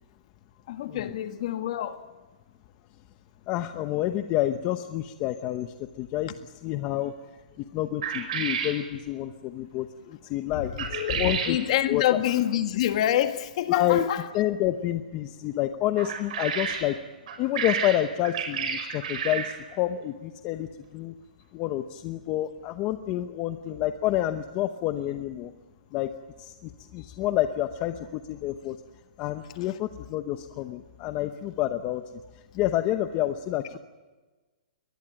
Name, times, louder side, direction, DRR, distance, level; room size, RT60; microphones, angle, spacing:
voice 1, 0.7-2.0 10.5-14.2 29.6-29.8, left 11 dB, 45° left, 1.7 m, -27 dB
voice 2, 3.5-6.3 6.6-7.1 7.6-10.9 11.2-11.6 11.8-12.2 13.7-14.0 14.3-17.0 17.4-21.1 21.5-25.5 25.9-26.1 26.4-28.8 29.2-32.0 32.5-33.8, left 13 dB, 25° left, 0.8 m, -28 dB
sound 1, 8.0-8.8 10.8-11.6 16.0-16.9 17.3-19.6, right 7 dB, 55° right, 6.4 m, -30 dB
22.5 x 20.0 x 8.9 m
hypercardioid pair, 170°, 5 cm